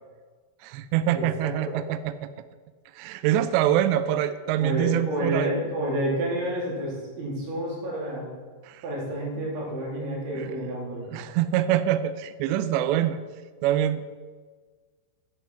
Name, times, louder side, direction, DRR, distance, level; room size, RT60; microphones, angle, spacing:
voice 1, 0.6-2.3 2.9-5.5 8.6-8.8 9.4-9.5 10.3-10.7 11.1-13.2 13.6-14.0, right 11 dB, 85° right, 12 dB, 2.5 m, -25 dB
voice 2, 1.1-1.5 4.6-8.3 8.8-11.1, right 1 dB, 70° right, -4 dB, 5.5 m, -29 dB
10.5 x 9.4 x 5.8 m, 1.5 s
omnidirectional pair, 5.7 m